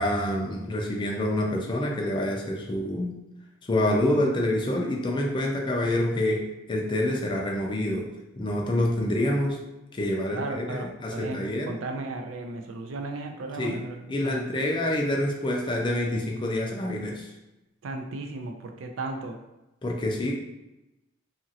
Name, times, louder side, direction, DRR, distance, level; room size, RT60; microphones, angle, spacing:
voice 1, 0.0-3.2 3.7-9.6 9.9-11.8 13.6-13.8 14.1-17.3 19.8-20.3, left 1 dB, 25° left, 0 dB, 0.4 m, -27 dB
voice 2, 10.3-14.4 17.8-19.4, right 2 dB, 70° right, 4 dB, 0.4 m, -35 dB
2.8 x 2.5 x 2.8 m, 0.96 s
head